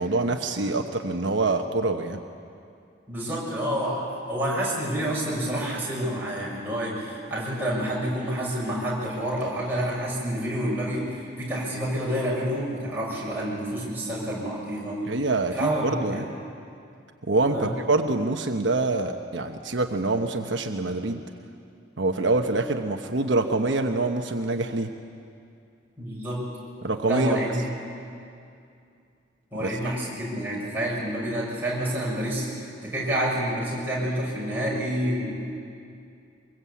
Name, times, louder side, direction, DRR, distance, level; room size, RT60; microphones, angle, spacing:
voice 1, 0.0-2.2 15.1-16.3 17.3-21.2 22.0-24.9 26.8-27.4 29.6-29.7, right 2 dB, 75° right, 4 dB, 1.1 m, -25 dB
voice 2, 3.1-15.0 15.5-16.2 17.5-17.8 26.0-26.4 27.1-27.6 29.5-35.3, right 1 dB, 10° right, -6 dB, 6.6 m, -28 dB
23.5 x 22.0 x 8.5 m, 2.5 s
head